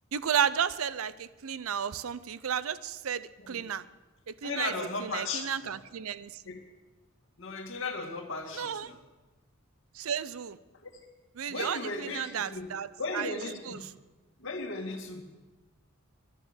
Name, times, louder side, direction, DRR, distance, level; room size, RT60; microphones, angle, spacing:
voice 1, 0.1-3.8 4.3-4.7 5.0-6.5 8.5-8.9 9.9-10.6 11.4-13.4 13.6-13.9, right 8 dB, 75° right, 17 dB, 0.5 m, -33 dB
voice 2, 4.4-5.7 6.5-6.6 7.4-9.0 10.8-10.9 11.5-12.7 13.0-13.9 14.4-15.3, left 3 dB, 65° left, 3 dB, 2.1 m, -36 dB
11.0 x 10.5 x 8.1 m, 1.2 s
head